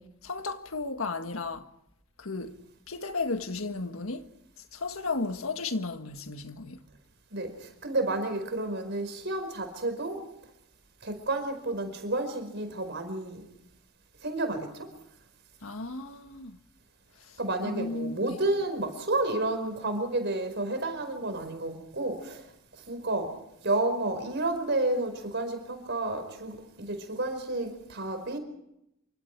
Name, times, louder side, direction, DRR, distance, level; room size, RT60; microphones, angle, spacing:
voice 1, 0.0-1.7 2.2-2.6 2.9-4.3 4.7-6.8 15.6-16.6 17.2-18.4, left 3 dB, 75° left, 1.7 m, -34 dB
voice 2, 7.3-10.2 11.0-13.4 14.2-14.9 17.4-22.4 22.9-23.3 23.6-28.4, right 2 dB, 55° right, 5.0 m, -31 dB
27.5 x 25.0 x 4.7 m
head